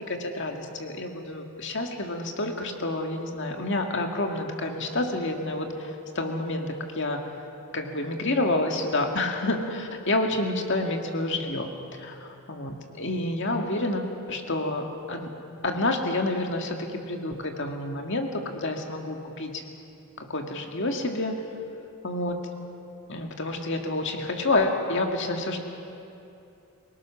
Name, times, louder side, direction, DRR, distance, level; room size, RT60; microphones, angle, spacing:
voice 1, 0.1-7.3 7.7-15.3 15.6-19.6 20.2-21.4 22.0-22.4 23.1-25.6, left 2 dB, 55° left, 3 dB, 2.0 m, -29 dB
27.5 x 18.5 x 6.2 m, 2.8 s
head